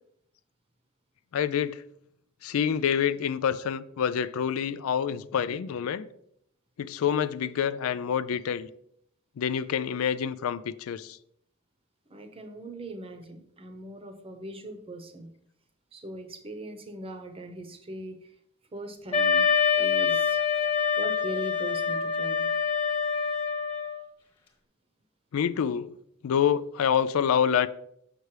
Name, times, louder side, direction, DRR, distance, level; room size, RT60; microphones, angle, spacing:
voice 1, 1.3-1.8 2.4-6.1 6.8-8.7 9.4-11.2 25.3-25.9 26.2-27.7, left 8 dB, 85° left, 0.4 m, -27 dB
voice 2, 12.1-15.3 15.9-18.3 18.7-19.5 19.8-20.4 21.0-22.5, right 1 dB, 25° right, 0.8 m, -40 dB
Wind instrument woodwind instrument, 19.1-24.0, left 6 dB, 25° left, 1.4 m, -25 dB
6.7 x 5.9 x 3.2 m
head